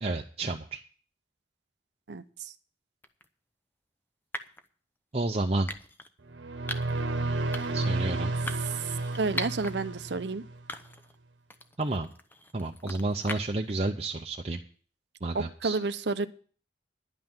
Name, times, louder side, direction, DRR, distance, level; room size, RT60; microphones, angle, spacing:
voice 1, 0.0-0.8 5.1-5.7 7.7-8.3 11.8-12.1 12.5-14.6 15.2-15.8, right 2 dB, 35° right, 2 dB, 0.7 m, -30 dB
voice 2, 2.1-2.5 9.2-10.4 15.3-16.3, right 3 dB, 70° right, 12 dB, 0.7 m, -30 dB
sound 1, 3.0-3.3 4.3-4.7 5.7-6.1 6.7-7.0 7.5-7.9 8.5-9.7 10.2-10.3 10.7-11.2 11.5-13.7, left 1 dB, 10° left, 0.7 m, -39 dB
sound 2, 6.3-10.6, right 2 dB, 85° right, 1.2 m, -32 dB
11.0 x 5.8 x 8.9 m, 0.42 s
head